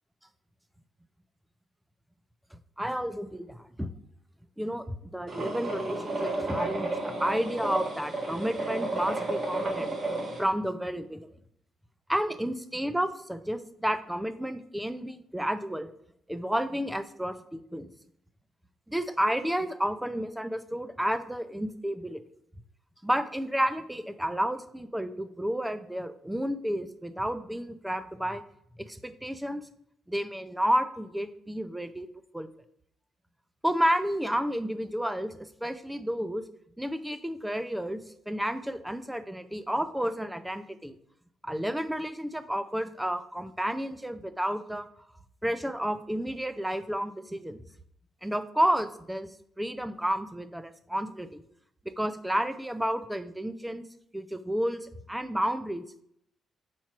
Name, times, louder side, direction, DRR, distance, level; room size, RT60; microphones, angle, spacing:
voice 1, 2.5-3.9 4.6-9.9 10.4-11.3 12.1-15.9 16.3-17.9 18.9-22.2 23.0-28.4 28.8-29.6 30.1-32.1 32.3-32.5 33.6-36.4 36.8-41.0 41.4-44.9 45.4-47.6 48.2-49.3 49.6-51.4 52.0-53.8 54.1-55.8, equal, 5° right, 11 dB, 0.5 m, -31 dB
sound 1, 5.3-10.4, right 2 dB, 45° right, 1.9 m, -32 dB
4.4 x 4.4 x 5.8 m, 0.72 s
cardioid pair, 90°, 0 cm